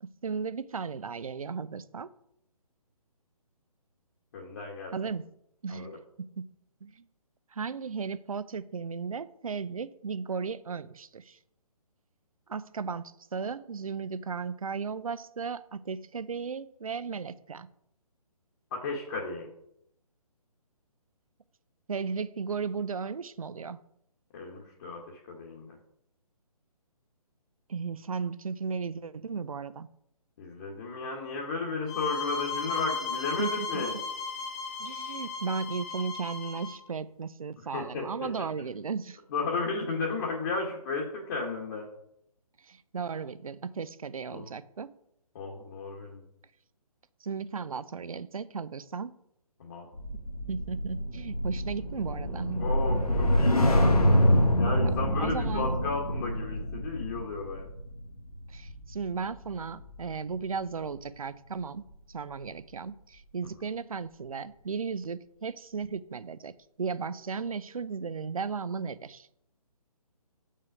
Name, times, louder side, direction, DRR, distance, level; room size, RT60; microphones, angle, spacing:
voice 1, 0.0-2.1 4.9-5.3 5.6-6.5 6.8-7.0 7.5-11.4 12.5-17.7 21.9-23.8 27.7-29.9 33.4-34.0 34.8-39.2 42.7-44.9 47.2-49.2 50.5-52.7 55.1-55.7 58.5-61.8 62.1-69.3, right 5 dB, 65° right, 16 dB, 0.6 m, -35 dB
voice 2, 4.3-4.9 5.7-6.0 18.7-19.5 24.3-25.7 30.4-33.9 37.7-38.3 39.3-41.9 44.3-44.5 45.3-46.2 49.6-49.9 52.6-53.7 54.6-57.7, left 3 dB, 35° left, -1 dB, 1.4 m, -34 dB
sound 1, 31.9-36.8, left 5 dB, 10° left, 0.3 m, -36 dB
sound 2, 49.9-60.3 60.7-61.0, equal, 75° left, 1.7 m, -26 dB
7.9 x 5.6 x 4.9 m, 0.76 s
figure-of-eight pair, 140°, 20 cm